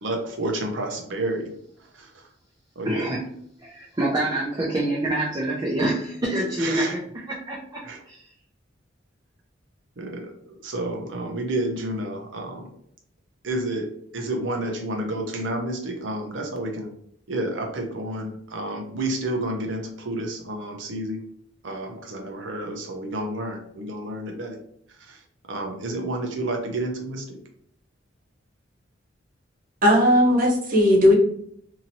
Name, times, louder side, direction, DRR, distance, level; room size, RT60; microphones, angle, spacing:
voice 1, 0.0-1.5 1.8-2.3 2.8-3.2 6.6-7.0 7.8-8.0 10.0-12.7 13.4-13.9 14.1-16.9 17.3-21.2 21.6-24.6 25.0-27.4, right 1 dB, 80° right, 3 dB, 0.7 m, -30 dB
voice 2, 2.9-3.2 3.6-7.0 7.3-8.3, right 1 dB, 20° right, -4 dB, 0.5 m, -26 dB
voice 3, 29.8-31.1, left 1 dB, 50° right, -1 dB, 0.8 m, -17 dB
2.8 x 2.7 x 2.7 m, 0.69 s
head